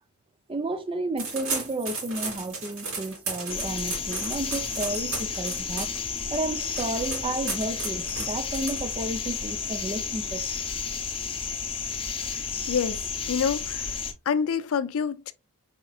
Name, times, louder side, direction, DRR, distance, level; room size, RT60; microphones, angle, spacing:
voice 1, 0.5-5.9 6.3-10.4, right 2 dB, 25° right, 0.5 m, -32 dB
sound 1, 1.2-9.2, right 4 dB, 65° right, 2.7 m, -35 dB
sound 2, 3.5-14.1, left 6 dB, 25° left, 0.7 m, -32 dB
voice 2, 12.3-13.0 13.3-13.9 14.3-15.3, left 6 dB, 65° left, 0.5 m, -27 dB
4.8 x 4.3 x 2.4 m
head